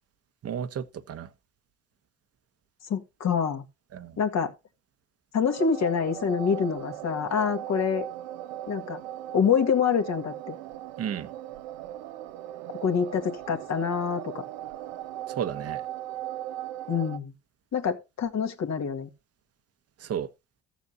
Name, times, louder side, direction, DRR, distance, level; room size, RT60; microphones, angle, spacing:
voice 1, 0.4-1.3 3.9-4.2 11.0-11.3 15.3-15.8 20.0-20.3, right 8 dB, 50° right, 1.0 m, -33 dB
voice 2, 2.9-3.6 4.2-4.5 5.3-8.1 8.7-9.0 9.3-10.6 12.8-14.4 16.9-17.3 17.7-19.1, left 6 dB, 55° left, 1.9 m, -26 dB
sound 1, 5.5-17.2, right 13 dB, 85° right, 0.7 m, -38 dB
14.5 x 7.1 x 2.7 m
supercardioid pair, 70°, 32 cm